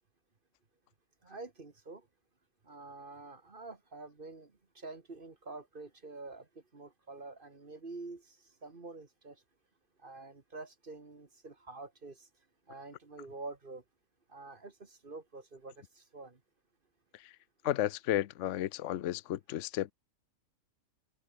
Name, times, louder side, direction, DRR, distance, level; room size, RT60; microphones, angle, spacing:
voice 1, 1.2-2.1 2.6-9.4 10.0-12.3 12.7-13.8 14.3-16.4, right 3 dB, 40° right, 2.0 m, -47 dB
voice 2, 17.6-19.9, left 12 dB, 65° left, 1.0 m, -33 dB
omnidirectional pair, 1.4 m